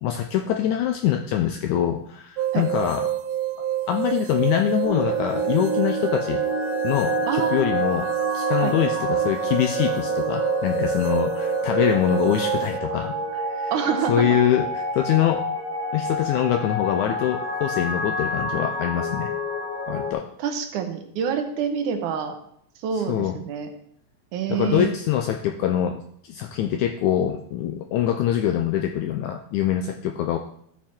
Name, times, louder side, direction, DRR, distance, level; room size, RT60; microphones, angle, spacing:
voice 1, 0.0-3.1 3.9-6.4 6.8-13.7 14.1-15.5 15.9-19.3 19.9-20.3 22.9-23.4 24.5-30.4, left 10 dB, 85° left, 6 dB, 1.7 m, -24 dB
sound 1, 2.4-12.8, right 12 dB, 90° right, 1.7 m, -27 dB
sound 2, 4.8-20.1, left 1 dB, 30° right, 2.5 m, -29 dB
voice 2, 7.3-7.8 8.6-8.8 13.7-14.3 20.4-22.4 22.8-23.7 24.3-24.9, right 7 dB, 70° right, 6 dB, 2.2 m, -26 dB
12.5 x 5.9 x 4.3 m, 0.67 s
omnidirectional pair, 4.0 m